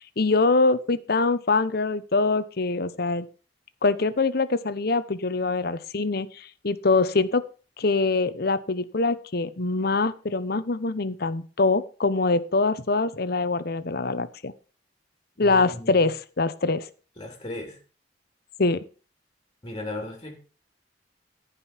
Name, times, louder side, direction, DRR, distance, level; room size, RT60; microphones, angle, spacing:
voice 1, 0.0-3.3 3.8-7.4 7.8-14.5 15.4-16.9 18.6-18.8, left 3 dB, 60° left, 14 dB, 1.0 m, -24 dB
voice 2, 15.4-16.1 17.2-17.8 19.6-20.4, left 2 dB, 25° left, 3 dB, 3.2 m, -36 dB
14.5 x 5.4 x 5.8 m, 0.36 s
head